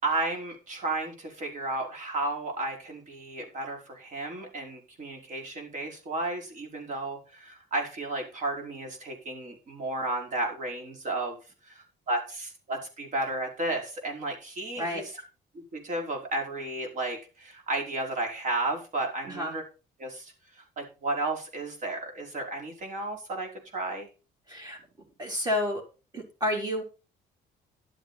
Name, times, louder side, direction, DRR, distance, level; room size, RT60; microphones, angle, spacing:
voice 1, 0.0-11.4 11.7-15.0 15.5-19.6 20.0-24.1, right 2 dB, 50° right, 2 dB, 5.0 m, -33 dB
voice 2, 24.5-24.8 25.2-25.8 26.1-26.8, left 1 dB, 25° right, 1 dB, 4.1 m, -30 dB
11.5 x 8.4 x 4.2 m, 0.31 s
cardioid pair, 110°, 17 cm